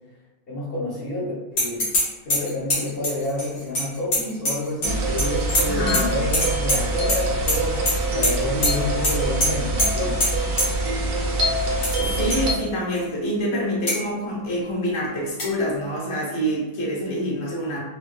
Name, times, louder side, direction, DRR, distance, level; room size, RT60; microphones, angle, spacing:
voice 1, 0.5-1.9 2.2-7.8 8.1-10.2, left 1 dB, 45° left, -6 dB, 1.0 m, -29 dB
sound 1, 1.6-2.0 2.3-4.9 5.2-6.0 6.3-7.2 7.5-7.9 8.2-8.3 8.6-8.7 9.0-9.1 9.4-9.5 9.8-9.9 10.2-10.3 10.6-10.7 11.6-12.0 12.3-12.4 12.9-13.0 13.9-14.0 15.4-15.5, left 1 dB, 85° left, 1.9 m, -22 dB
sound 2, 4.8-12.5, right 2 dB, 90° right, 1.2 m, -24 dB
voice 2, 5.6-6.1 12.0-17.8, equal, 25° left, -5 dB, 0.6 m, -26 dB
4.4 x 2.2 x 2.2 m, 1.2 s
omnidirectional pair, 1.6 m